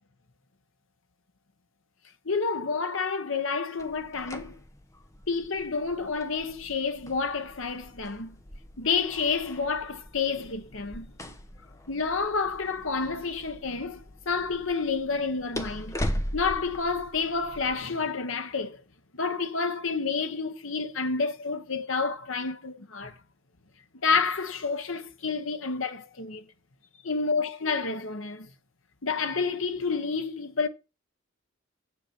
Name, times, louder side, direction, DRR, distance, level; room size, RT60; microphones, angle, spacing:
voice 1, 2.2-4.6 5.3-8.4 8.8-11.3 11.9-16.0 16.3-18.8 19.1-23.2 24.0-26.5 27.0-28.5 29.0-30.7, left 4 dB, 70° left, 1.2 m, -29 dB
sound 1, 3.8-17.7, equal, 15° left, 0.9 m, -40 dB
7.9 x 7.5 x 6.0 m
head